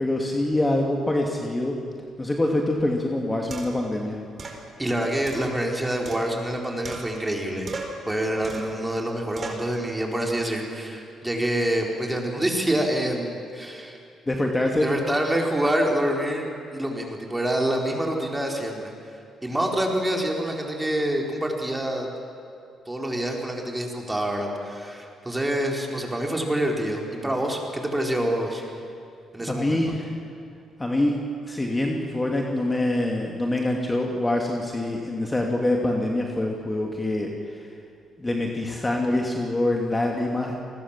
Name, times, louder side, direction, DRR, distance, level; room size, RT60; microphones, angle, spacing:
voice 1, 0.0-1.7 2.2-4.2 14.3-14.9 29.5-30.1 30.8-31.2 31.5-37.7 38.2-40.6, left 1 dB, 15° left, 1 dB, 2.6 m, -25 dB
sound 1, 2.8-2.9 3.5-3.9 4.4-4.6 5.3-6.5 6.8-7.4 7.7-8.1 8.4-8.8 9.4-9.7, right 3 dB, 40° right, 4.4 m, -38 dB
voice 2, 4.8-7.7 8.1-14.0 14.8-18.9 19.4-22.1 22.9-28.6 29.3-29.8, right 1 dB, 10° right, 1 dB, 4.5 m, -26 dB
29.0 x 20.5 x 7.5 m, 2.4 s
cardioid pair, 90°, 0 cm